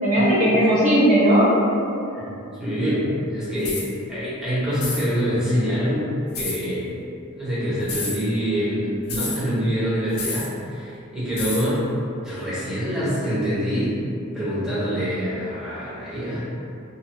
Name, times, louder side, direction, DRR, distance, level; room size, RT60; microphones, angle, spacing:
voice 1, 0.0-2.0, equal, 35° right, -9 dB, 0.9 m, -18 dB
voice 2, 2.1-6.9 7.3-11.9 12.2-13.9 14.3-16.5, equal, 5° right, -12 dB, 1.0 m, -25 dB
sound 1, 3.6-3.9 4.8-5.1 6.3-6.6 7.8-8.2 9.1-9.4 10.2-10.5 11.4-11.7, left 3 dB, 80° left, 0.6 m, -29 dB
2.7 x 2.6 x 2.7 m, 2.5 s
head